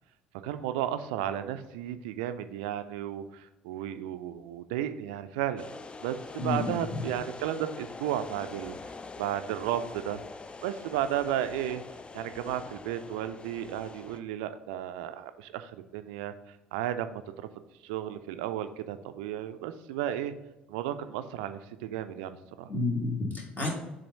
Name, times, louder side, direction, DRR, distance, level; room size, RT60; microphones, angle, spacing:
voice 1, 0.4-5.7 6.0-8.8 9.2-10.2 10.6-11.8 12.1-16.3 16.7-17.2 17.8-20.3 20.7-22.7, right 11 dB, 65° right, 10 dB, 0.3 m, -33 dB
sound 1, 5.6-14.2, left 4 dB, 20° left, 0.4 m, -44 dB
voice 2, 6.4-7.0 22.7-23.7, left 3 dB, 35° left, -1 dB, 2.0 m, -30 dB
7.1 x 2.6 x 5.3 m, 1.0 s
figure-of-eight pair, 55°, 5 cm